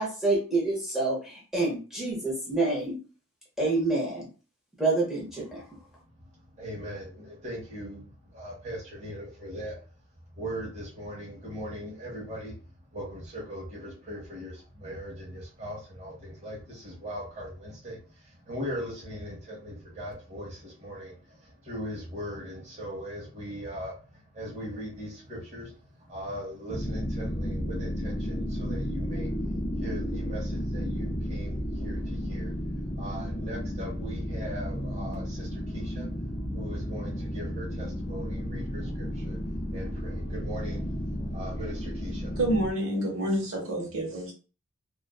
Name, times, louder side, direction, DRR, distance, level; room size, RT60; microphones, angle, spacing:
voice 1, 0.0-2.9 3.6-4.3 4.8-5.6, right 2 dB, ahead, -5 dB, 0.7 m, -27 dB
voice 2, 5.9-10.0 10.3-42.4, equal, 35° right, -5 dB, 0.9 m, -40 dB
sound 1, 26.7-42.7, equal, 20° left, 0.3 m, -33 dB
voice 3, 42.4-44.3, right 1 dB, 70° right, 0 dB, 0.9 m, -28 dB
2.4 x 2.2 x 2.3 m, 0.35 s
head